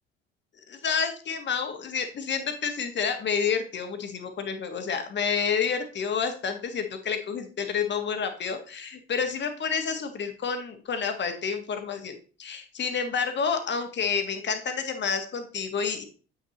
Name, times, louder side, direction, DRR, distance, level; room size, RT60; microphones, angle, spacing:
voice 1, 0.7-16.0, left 6 dB, 35° left, 7 dB, 1.4 m, -29 dB
8.2 x 5.8 x 2.9 m, 0.38 s
figure-of-eight pair, 60°, 31 cm